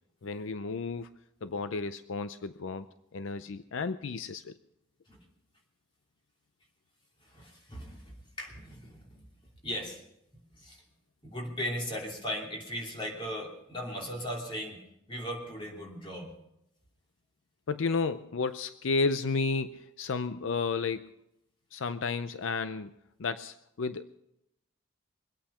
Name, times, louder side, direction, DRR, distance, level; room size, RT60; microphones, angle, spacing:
voice 1, 0.2-1.1 1.4-2.9 3.1-4.6 17.7-21.1 21.7-22.9 23.2-24.2, left 4 dB, 75° left, 12 dB, 0.5 m, -32 dB
voice 2, 7.2-9.3 9.6-10.0 10.5-10.8 11.2-14.8 15.1-16.3, equal, 25° left, -1 dB, 3.0 m, -38 dB
23.0 x 8.7 x 5.6 m, 0.82 s
head